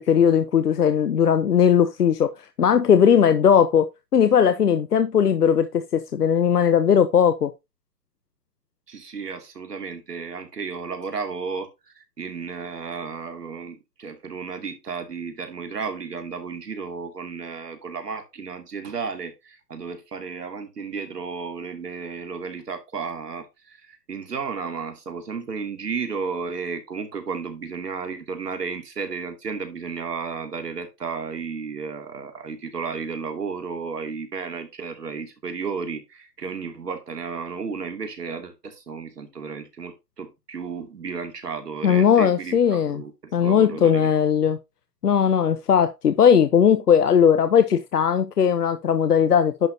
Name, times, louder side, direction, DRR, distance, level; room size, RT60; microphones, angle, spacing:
voice 1, 0.0-3.9 4.1-7.5 41.8-43.0 43.3-44.6 45.0-49.7, left 8 dB, 70° left, 1.1 m, -18 dB
voice 2, 8.9-44.1, right 5 dB, 75° right, 2.9 m, -33 dB
10.5 x 6.3 x 2.9 m
hypercardioid pair, 145°, 48 cm